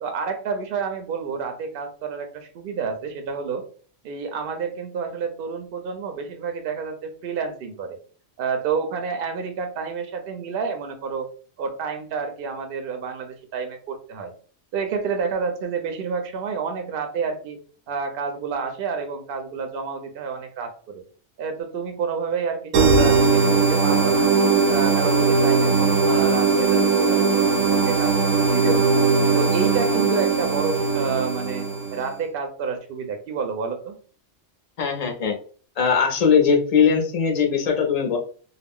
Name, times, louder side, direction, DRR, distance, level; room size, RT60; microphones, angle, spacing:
voice 1, 0.0-3.6 4.0-8.0 8.4-11.3 11.6-14.3 14.7-17.6 17.9-21.0 21.4-24.3 24.7-28.1 28.4-28.9 29.3-34.0, right 5 dB, 60° right, 6 dB, 0.6 m, -29 dB
sound 1, 22.7-32.1, right 4 dB, 85° right, 0.9 m, -19 dB
voice 2, 34.8-35.3 35.8-38.2, left 6 dB, 50° left, 2 dB, 0.5 m, -20 dB
2.3 x 2.1 x 3.5 m, 0.42 s
omnidirectional pair, 1.3 m